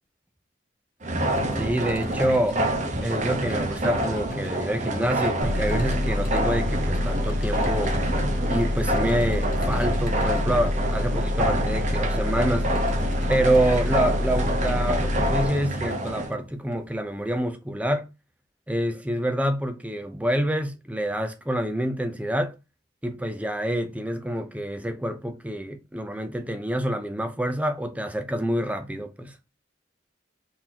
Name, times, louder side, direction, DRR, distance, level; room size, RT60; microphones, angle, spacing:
sound 1, 1.0-16.3, right 1 dB, 40° right, 0.9 m, -28 dB
sound 2, 1.1-17.3, left 2 dB, 45° left, 0.8 m, -41 dB
voice 1, 1.6-2.6 3.0-8.0 8.5-12.7 13.3-18.1 18.7-22.6 23.0-29.3, right 1 dB, 5° right, 0.5 m, -27 dB
sound 3, 5.4-15.5, left 1 dB, 70° right, 1.3 m, -27 dB
4.4 x 3.7 x 2.8 m
head